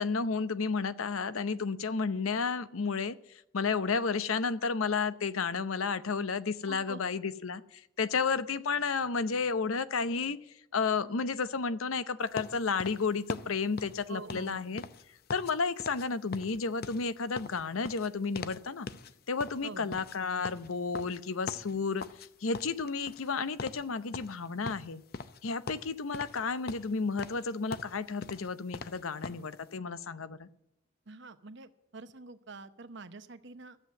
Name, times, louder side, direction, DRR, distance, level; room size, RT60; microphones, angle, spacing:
voice 1, 0.0-10.4 10.7-14.8 15.3-18.9 19.3-22.1 22.4-25.0 25.4-30.5, left 4 dB, 85° left, 14 dB, 0.8 m, -32 dB
voice 2, 6.7-7.0 14.1-14.6 19.6-20.0 31.1-33.8, right 3 dB, 60° right, 11 dB, 0.9 m, -46 dB
sound 1, 12.4-15.5 15.8-16.1 16.3-18.6 18.9-19.1 19.4-22.3 22.5-23.3 23.6-23.8 24.1-25.4 25.7-26.4 26.7-29.5, left 4 dB, 50° left, 0.6 m, -42 dB
13.0 x 7.8 x 9.5 m, 0.80 s
head